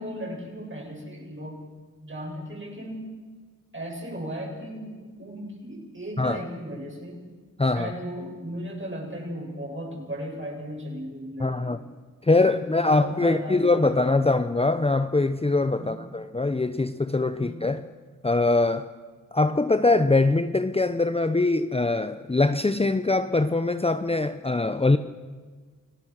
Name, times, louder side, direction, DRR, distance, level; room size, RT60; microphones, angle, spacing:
voice 1, 0.0-1.6 2.0-3.1 3.7-7.3 7.6-11.8 12.3-14.3 15.8-16.0 17.4-17.6, equal, 35° right, -1 dB, 7.9 m, -36 dB
voice 2, 7.6-7.9 11.4-11.8 12.2-17.8 18.2-18.9 19.3-25.0, left 2 dB, 15° left, 10 dB, 0.8 m, -23 dB
29.5 x 17.5 x 6.6 m, 1.4 s
cardioid pair, 65°, 34 cm